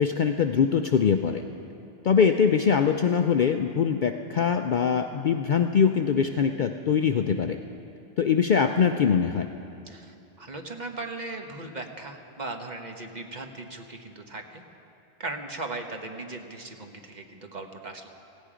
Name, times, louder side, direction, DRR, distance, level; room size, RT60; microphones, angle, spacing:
voice 1, 0.0-1.4 2.0-7.6 8.2-9.5, left 6 dB, 55° left, 6 dB, 0.6 m, -23 dB
voice 2, 9.9-14.6 15.2-18.1, right 2 dB, 40° right, 4 dB, 1.1 m, -38 dB
17.0 x 16.5 x 5.0 m, 2.8 s
omnidirectional pair, 1.2 m